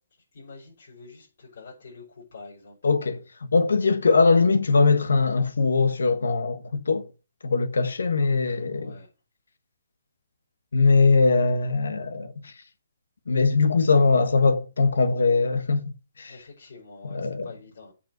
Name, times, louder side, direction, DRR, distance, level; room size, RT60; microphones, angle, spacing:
voice 1, 0.3-2.8 8.7-9.1 16.2-17.9, left 4 dB, 55° left, 5.8 m, -46 dB
voice 2, 2.8-3.2 3.5-7.1 7.4-8.9 10.7-12.5 13.3-15.8 16.2-16.3 17.1-17.5, left 4 dB, 85° left, 1.2 m, -21 dB
8.5 x 5.3 x 7.8 m
hypercardioid pair, 165°, 0 cm